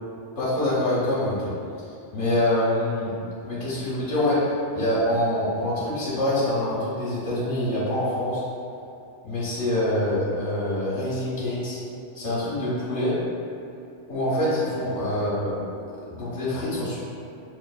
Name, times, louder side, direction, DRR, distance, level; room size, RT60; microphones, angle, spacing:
voice 1, 0.4-1.5 1.8-3.1 3.4-8.4 9.2-11.8 12.1-13.1 14.1-15.5 16.1-17.0, left 1 dB, 90° left, -8 dB, 1.2 m, -25 dB
6.3 x 2.4 x 2.2 m, 2.6 s
omnidirectional pair, 1.2 m